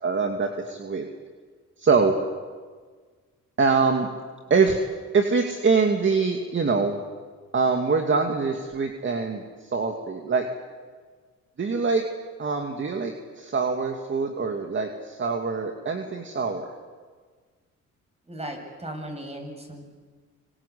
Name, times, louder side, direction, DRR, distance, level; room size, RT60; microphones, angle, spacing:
voice 1, 0.0-1.0 1.8-2.1 3.6-4.1 4.5-4.8 5.1-6.9 7.5-10.5 11.6-12.0 12.4-16.7, right 4 dB, 40° right, 3 dB, 2.5 m, -24 dB
voice 2, 18.3-19.8, right 1 dB, 20° right, 4 dB, 7.4 m, -36 dB
26.0 x 26.0 x 8.6 m, 1.5 s
cardioid pair, 90°, 30 cm